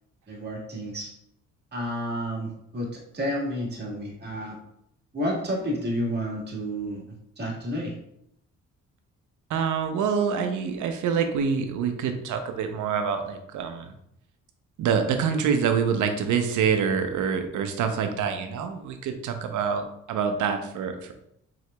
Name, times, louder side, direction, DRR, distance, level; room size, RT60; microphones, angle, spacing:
voice 1, 0.3-1.1 1.7-2.9 3.1-4.6 5.1-7.0 7.4-7.9, equal, 35° right, -3 dB, 1.6 m, -30 dB
voice 2, 9.5-13.9 14.8-21.1, right 6 dB, 75° right, 7 dB, 0.7 m, -26 dB
4.8 x 3.9 x 2.2 m, 0.76 s
cardioid pair, 90°, 30 cm